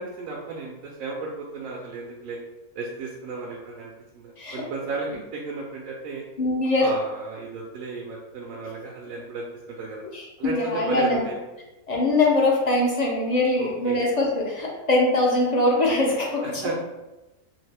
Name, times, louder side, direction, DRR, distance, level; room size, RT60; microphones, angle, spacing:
voice 1, 0.0-2.4 2.7-6.2 6.8-9.5 9.8-10.0 10.4-11.4 13.6-14.0 16.4-16.8, right 3 dB, 80° right, -2 dB, 1.0 m, -34 dB
voice 2, 6.4-6.9 10.1-11.2 11.9-16.6, left 2 dB, 45° left, -2 dB, 0.6 m, -22 dB
3.0 x 2.8 x 3.3 m, 1.0 s
omnidirectional pair, 1.4 m